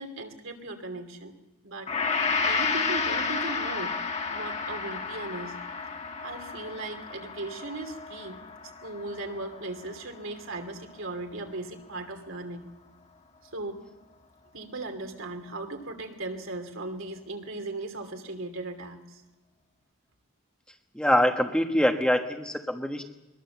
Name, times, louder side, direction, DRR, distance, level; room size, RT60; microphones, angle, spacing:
voice 1, 0.0-1.3 1.6-3.9 4.3-5.5 6.2-12.7 13.5-13.8 14.5-19.2, right 2 dB, 65° right, 4 dB, 2.9 m, -37 dB
Gong, 1.9-10.3 10.6-10.8, left 5 dB, 30° left, 1.7 m, -31 dB
voice 2, 20.9-23.0, equal, 5° left, 3 dB, 1.2 m, -24 dB
22.5 x 21.5 x 7.1 m, 1.0 s
head